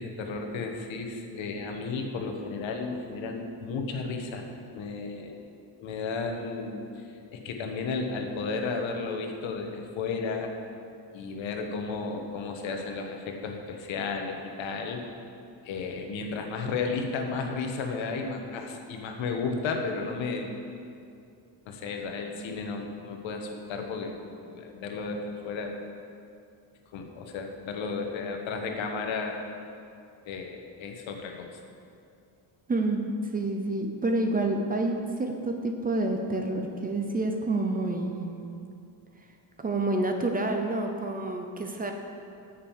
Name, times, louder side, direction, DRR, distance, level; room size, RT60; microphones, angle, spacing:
voice 1, 0.0-4.4 4.7-5.4 5.8-7.0 7.3-10.5 11.1-15.0 15.6-20.6 21.6-24.2 24.5-25.8 26.9-29.4 30.2-31.6, left 4 dB, 85° left, 3 dB, 1.4 m, -33 dB
voice 2, 32.7-33.0 33.3-38.5 39.6-41.9, right 2 dB, 20° right, 4 dB, 0.5 m, -28 dB
8.8 x 6.8 x 7.2 m, 2.5 s
cardioid pair, 175°, 45 cm